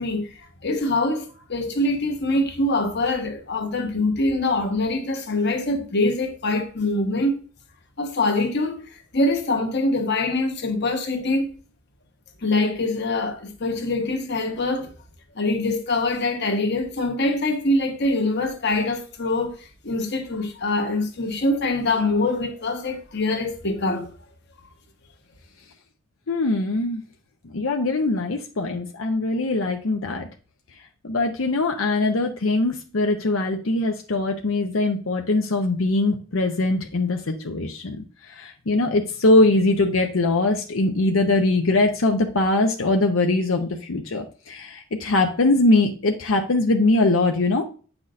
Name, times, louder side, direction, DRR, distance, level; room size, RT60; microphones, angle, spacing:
voice 1, 0.0-7.4 8.0-11.5 12.4-14.9 15.3-24.1, left 2 dB, 60° left, 1.2 m, -24 dB
voice 2, 26.3-27.0 27.4-30.3 31.0-47.6, left 2 dB, 85° left, 0.7 m, -22 dB
8.6 x 6.1 x 2.6 m
head